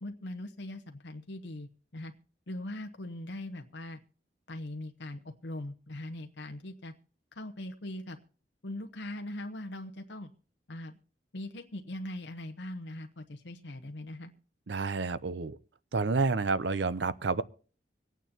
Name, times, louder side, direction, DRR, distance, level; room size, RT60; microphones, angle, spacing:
voice 1, 0.0-2.1 2.5-4.0 4.5-6.9 7.3-8.2 8.6-10.3 10.7-11.0 11.3-14.3, left 1 dB, 75° left, 0.9 m, -41 dB
voice 2, 14.7-15.6 15.9-17.4, right 4 dB, 70° right, 0.6 m, -29 dB
25.5 x 9.2 x 2.8 m
head